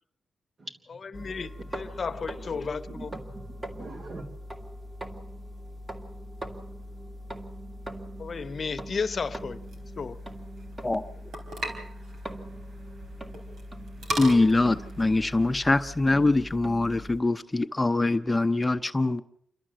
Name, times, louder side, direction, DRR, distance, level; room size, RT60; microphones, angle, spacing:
voice 1, 0.9-3.1 8.2-9.6 10.0-10.2, left 5 dB, 50° left, 0.9 m, -33 dB
sound 1, 1.1-17.2, equal, 20° right, 2.2 m, -41 dB
voice 2, 2.4-4.3, right 2 dB, 50° right, 3.2 m, -43 dB
sound 2, 9.6-16.0, right 1 dB, 80° right, 4.3 m, -39 dB
voice 3, 14.2-19.2, left 2 dB, 20° left, 0.7 m, -23 dB
28.5 x 12.5 x 7.5 m
cardioid pair, 80°, 0 cm